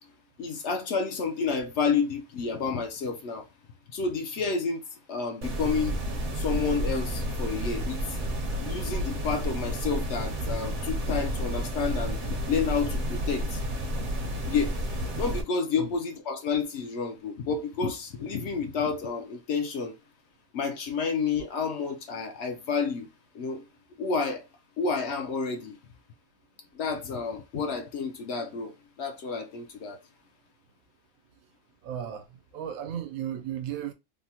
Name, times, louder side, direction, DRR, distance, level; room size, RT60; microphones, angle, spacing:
voice 1, 0.4-3.5 3.9-4.8 5.1-6.0 6.4-8.2 8.6-13.6 14.5-14.7 15.2-19.9 20.5-23.1 23.3-23.6 24.0-24.5 24.8-25.8 26.7-30.0, left 5 dB, 65° left, 0.8 m, -30 dB
sound 1, 5.4-15.4, equal, 45° right, 0.7 m, -31 dB
voice 2, 31.8-32.2 32.5-33.9, right 10 dB, 85° right, 1.1 m, -34 dB
3.4 x 2.1 x 2.7 m
omnidirectional pair, 1.4 m